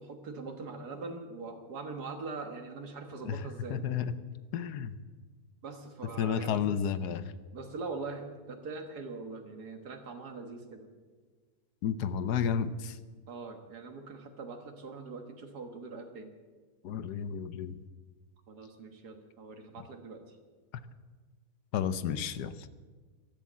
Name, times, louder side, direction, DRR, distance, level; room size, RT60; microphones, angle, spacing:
voice 1, 0.0-3.8 5.6-6.7 7.5-10.9 13.3-16.3 18.5-20.4, right 3 dB, 80° right, 5 dB, 2.0 m, -42 dB
voice 2, 3.7-4.1 4.5-5.0 6.2-7.2 11.8-13.0 16.8-17.8 21.7-22.5, left 8 dB, 85° left, 13 dB, 1.4 m, -31 dB
15.5 x 12.5 x 7.5 m, 1.4 s
omnidirectional pair, 1.7 m